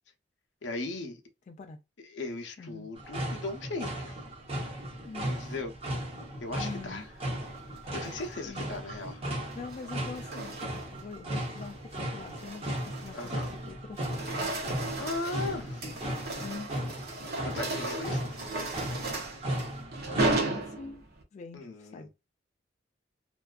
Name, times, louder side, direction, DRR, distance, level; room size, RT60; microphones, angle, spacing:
voice 1, 0.6-1.2 2.0-4.2 5.3-5.7 6.4-7.1 7.9-9.2 13.1-13.5 15.0-15.9 17.4-18.5 21.5-22.1, left 2 dB, 85° left, 0.6 m, -38 dB
voice 2, 1.5-1.8 2.6-2.9 5.0-5.5 6.6-7.1 8.4-8.7 9.5-14.5 16.4-16.7 20.1-21.0 21.3-22.1, left 4 dB, 40° left, 0.3 m, -44 dB
sound 1, 3.0-20.4, right 1 dB, 35° right, 0.9 m, -36 dB
sound 2, 7.8-8.3 9.4-11.0 11.4-11.7 12.2-13.6 13.9-21.2, right 2 dB, 60° right, 0.6 m, -35 dB
2.5 x 2.3 x 2.2 m
head